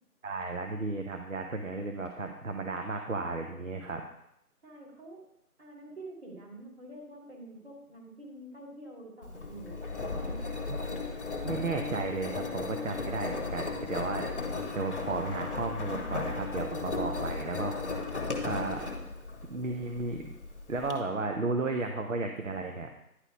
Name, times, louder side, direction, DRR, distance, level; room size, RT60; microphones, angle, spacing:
voice 1, 0.2-4.0 10.7-10.8 11.4-18.9 19.5-20.3 20.7-22.9, right 3 dB, 55° right, 4 dB, 0.9 m, -34 dB
voice 2, 4.6-5.2 5.6-9.8 10.0-10.7, right 1 dB, 40° right, -2 dB, 2.5 m, -47 dB
Engine, 9.2-20.9, left 3 dB, 50° left, 1.2 m, -36 dB
10.0 x 4.1 x 5.2 m, 0.79 s
figure-of-eight pair, 160°, 46 cm